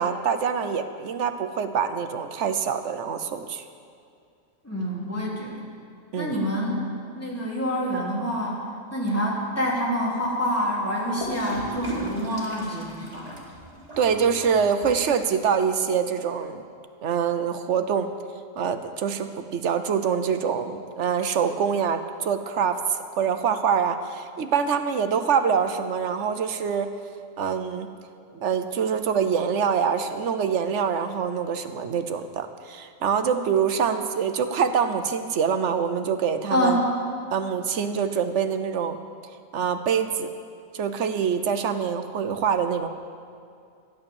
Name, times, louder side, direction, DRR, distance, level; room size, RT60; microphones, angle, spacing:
voice 1, 0.0-3.6 6.1-6.4 14.0-16.6 17.0-18.1 18.6-26.9 27.4-27.9 28.4-36.8 37.3-39.0 39.5-40.3 40.7-42.9, right 7 dB, 65° right, 9 dB, 1.1 m, -25 dB
voice 2, 4.6-5.6 6.2-6.8 7.1-13.3 36.5-36.9, equal, 10° left, -5 dB, 3.0 m, -27 dB
Gurgling / Toilet flush, 11.2-15.2, right 1 dB, 30° right, 2.2 m, -36 dB
13.0 x 10.5 x 7.0 m, 2.4 s
omnidirectional pair, 1.3 m